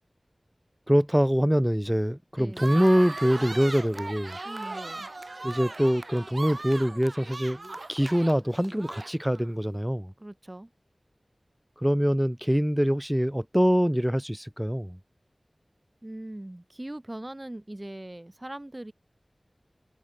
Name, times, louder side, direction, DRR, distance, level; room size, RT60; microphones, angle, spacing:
voice 1, 0.9-4.4 5.4-10.1 11.8-15.0, equal, 5° right, 0.5 m, -24 dB
voice 2, 2.4-2.8 4.4-5.1 10.2-10.7 16.0-18.9, right 1 dB, 30° right, 1.7 m, -40 dB
sound 1, 2.5-9.5, right 2 dB, 60° right, 0.4 m, -38 dB
wide cardioid pair, 45°, 0 cm